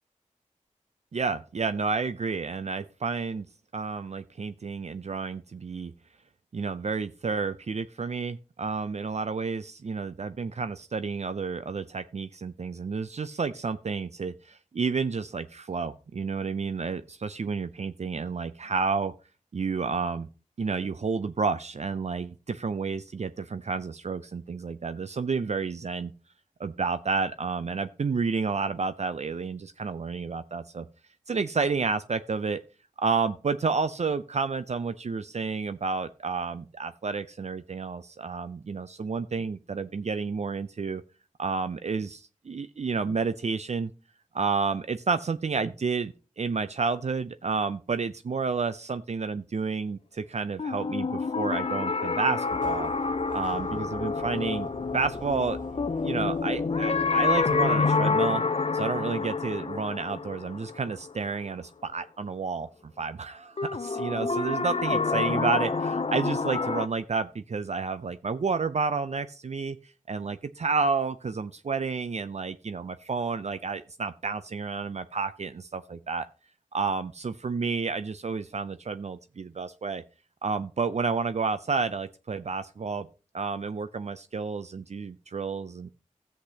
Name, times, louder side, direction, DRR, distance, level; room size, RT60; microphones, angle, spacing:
voice 1, 1.1-3.5 3.7-5.9 6.5-19.1 19.5-20.3 20.6-26.1 26.6-30.9 31.3-32.6 33.0-41.0 41.4-43.9 44.3-52.9 53.3-54.7 54.9-55.6 56.0-58.4 58.7-69.8 70.1-76.2 76.7-80.0 80.4-83.1 83.3-85.9, right 4 dB, 60° right, 12 dB, 0.5 m, -30 dB
sound 1, 50.6-61.5 63.6-66.9, left 4 dB, 50° left, 0.6 m, -28 dB
sound 2, 52.4-57.8, equal, 85° right, 5.9 m, -45 dB
13.0 x 8.1 x 2.8 m, 0.35 s
cardioid pair, 40°, 13 cm